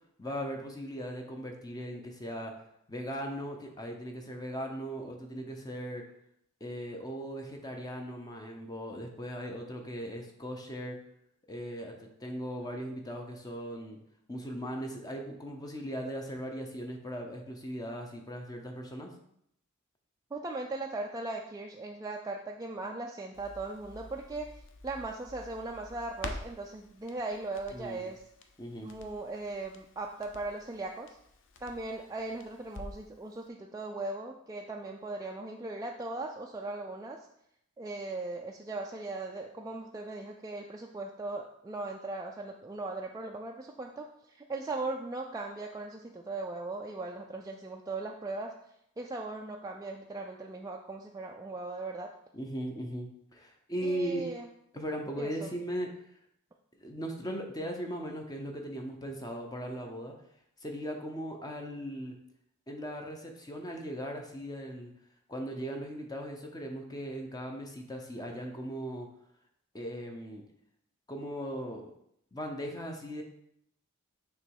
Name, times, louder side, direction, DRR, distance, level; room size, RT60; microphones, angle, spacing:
voice 1, 0.2-2.5 2.9-6.0 6.6-11.0 11.5-14.0 14.3-19.1 27.7-28.1 28.6-28.9 52.3-54.2 54.7-55.9 56.8-60.1 60.6-62.2 62.7-64.9 65.3-69.1 69.7-70.4 71.1-71.9 72.3-73.2, equal, 20° left, 2 dB, 0.6 m, -38 dB
voice 2, 20.3-28.2 28.8-31.2 31.6-37.3 37.8-48.5 49.0-52.1 53.8-54.5 55.2-55.5, right 2 dB, 15° right, 0 dB, 0.3 m, -38 dB
Crackle, 23.3-33.1 33.4-33.5, left 2 dB, 60° left, 0.6 m, -48 dB
6.6 x 3.0 x 4.7 m, 0.73 s
head